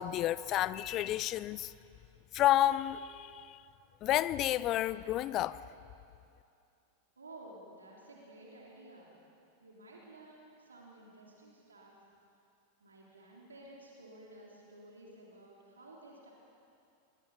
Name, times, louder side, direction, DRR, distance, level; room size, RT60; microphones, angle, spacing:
voice 1, 0.0-1.7 2.3-3.6 4.0-5.6, left 13 dB, 35° left, 0.5 m, -30 dB
voice 2, 7.2-9.2 9.6-12.1 12.8-16.3, right 1 dB, 75° right, 3.2 m, -53 dB
23.0 x 22.0 x 5.5 m
figure-of-eight pair, 90°, 0 cm